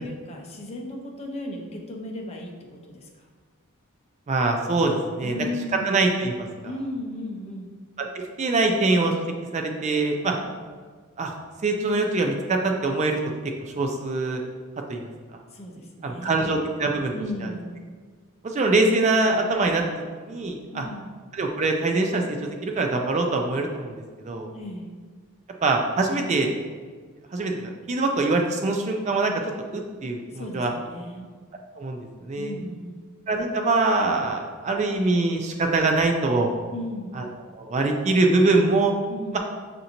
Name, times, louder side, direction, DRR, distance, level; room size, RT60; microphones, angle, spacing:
voice 1, 0.0-3.3 5.2-5.9 6.6-7.7 10.2-10.5 15.5-16.5 17.1-17.8 20.7-21.1 24.5-24.9 30.3-31.3 32.4-33.0 36.7-37.2 39.1-39.4, left 1 dB, 30° left, 1 dB, 0.6 m, -36 dB
voice 2, 4.3-5.3 5.7-6.5 8.0-9.1 9.5-10.3 11.2-11.4 11.6-13.2 13.8-14.4 14.9-15.1 16.0-17.1 18.4-19.8 20.3-20.9 21.3-24.5 25.6-26.5 27.3-29.3 29.7-30.7 31.8-32.5 33.3-36.5 37.2-37.3 37.5-38.9, right 3 dB, 30° right, 3 dB, 0.3 m, -23 dB
6.6 x 2.6 x 2.9 m, 1.5 s
head